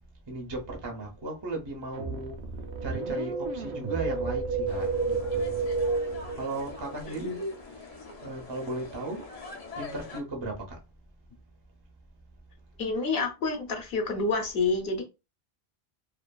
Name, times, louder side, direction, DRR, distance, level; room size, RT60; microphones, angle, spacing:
voice 1, 0.3-2.4 2.8-5.7 6.3-7.5 8.2-9.3 9.8-10.8, right 2 dB, 30° right, 0.5 m, -36 dB
sound 1, 1.9-6.8, right 4 dB, 60° right, 0.8 m, -38 dB
Wind, 2.7-7.0 7.3-7.4, right 4 dB, 85° right, 0.9 m, -31 dB
sound 2, 4.7-10.2, left 3 dB, 45° left, 0.5 m, -44 dB
voice 2, 12.8-15.0, left 3 dB, 65° left, 0.9 m, -28 dB
2.5 x 2.4 x 2.2 m
omnidirectional pair, 1.1 m